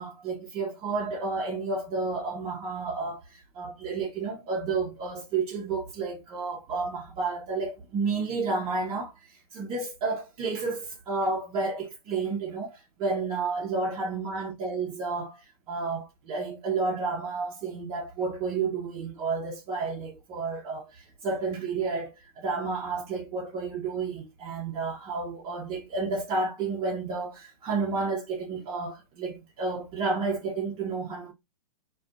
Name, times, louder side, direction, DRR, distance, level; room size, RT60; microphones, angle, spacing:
voice 1, 0.0-31.3, right 4 dB, 30° right, 0.6 m, -31 dB
2.3 x 2.2 x 2.4 m
hypercardioid pair, 115°, 19 cm